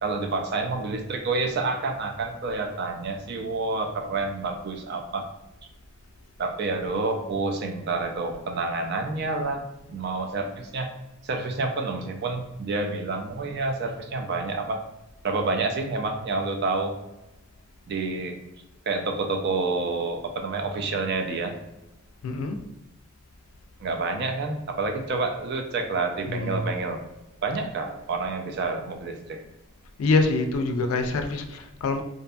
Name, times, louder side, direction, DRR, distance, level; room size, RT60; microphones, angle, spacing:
voice 1, 0.0-5.3 6.4-10.9 11.2-14.8 15.2-16.9 17.9-18.4 18.9-21.6 23.8-27.0 27.4-29.4, right 3 dB, 50° right, 5 dB, 0.3 m, -28 dB
voice 2, 22.2-22.6 26.3-26.7 30.0-32.0, left 3 dB, 80° left, 6 dB, 0.3 m, -25 dB
2.6 x 2.5 x 2.2 m, 0.98 s
head